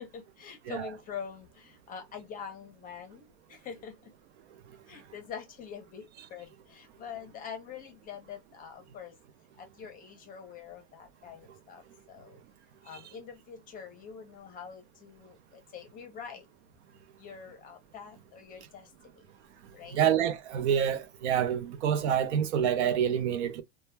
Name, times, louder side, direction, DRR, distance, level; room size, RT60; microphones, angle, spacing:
voice 1, 0.0-4.1 4.9-9.2 9.6-12.4 12.8-16.5 17.2-19.3 19.7-20.1, left 7 dB, 25° left, 0.7 m, -45 dB
voice 2, 19.9-23.6, right 9 dB, 65° right, 0.7 m, -27 dB
2.2 x 2.0 x 3.2 m
hypercardioid pair, 130°, 36 cm